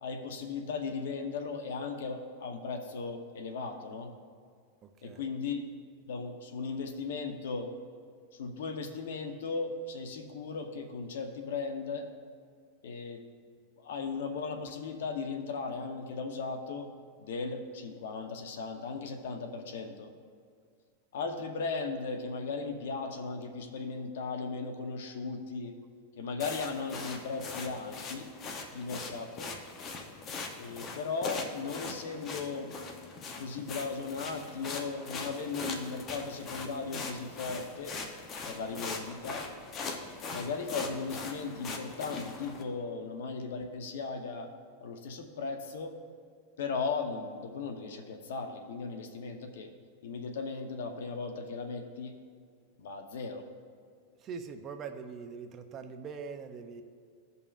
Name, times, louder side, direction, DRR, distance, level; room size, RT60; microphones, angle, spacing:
voice 1, 0.0-4.1 5.0-5.6 6.1-7.7 8.3-12.1 12.8-13.2 13.8-16.9 17.2-20.1 21.1-25.7 26.2-28.3 28.7-29.5 30.6-32.7 33.3-38.0 38.5-39.5 40.3-44.5 44.8-45.9 46.6-49.7 50.0-52.1 52.8-53.4, left 4 dB, 80° left, 5 dB, 0.8 m, -37 dB
voice 2, 4.8-5.2 54.2-56.8, right 5 dB, 25° right, 7 dB, 0.4 m, -42 dB
sound 1, 26.4-42.6, left 4 dB, 25° left, 0.7 m, -41 dB
15.5 x 5.4 x 2.4 m, 2.1 s
supercardioid pair, 155°, 0 cm